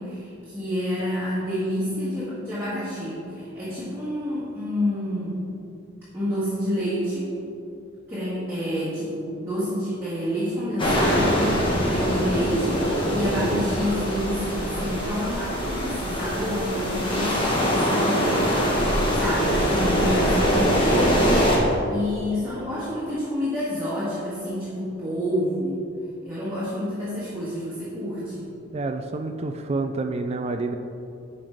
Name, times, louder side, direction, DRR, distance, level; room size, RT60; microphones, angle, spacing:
voice 1, 0.0-5.4 6.1-7.3 8.1-18.5 19.2-25.8 26.2-28.5, equal, 10° right, -11 dB, 1.8 m, -28 dB
sound 1, 10.8-21.6, equal, 25° left, 1.4 m, -23 dB
voice 2, 28.7-30.7, right 3 dB, 30° right, 6 dB, 0.3 m, -28 dB
10.0 x 5.4 x 3.6 m, 2.6 s
head